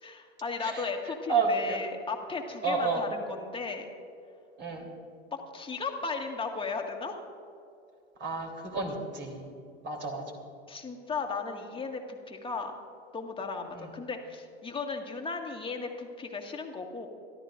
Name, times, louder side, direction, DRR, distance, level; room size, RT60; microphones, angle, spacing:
voice 1, 0.0-3.9 5.5-7.2 10.7-12.8 13.1-17.1, left 4 dB, 15° left, 3 dB, 1.9 m, -36 dB
voice 2, 1.3-1.8 2.6-3.0 4.6-4.9 8.2-9.4 9.8-10.2, right 4 dB, 35° right, 2 dB, 3.4 m, -30 dB
25.0 x 13.0 x 2.6 m, 2.5 s
hypercardioid pair, 95°, 33 cm